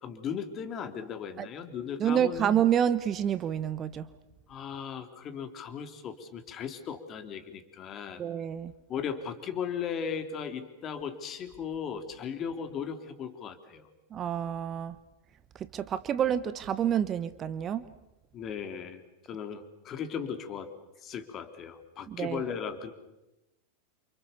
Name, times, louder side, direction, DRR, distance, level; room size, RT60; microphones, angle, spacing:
voice 1, 0.0-2.5 4.5-8.2 8.9-13.9 18.3-19.0 19.3-20.7 21.0-22.9, left 7 dB, 30° left, 8 dB, 3.6 m, -37 dB
voice 2, 2.0-4.1 8.2-8.7 14.1-15.0 15.5-17.9 22.1-22.5, right 9 dB, 25° right, 14 dB, 1.1 m, -28 dB
30.0 x 28.0 x 7.2 m, 0.96 s
figure-of-eight pair, 90°, 0 cm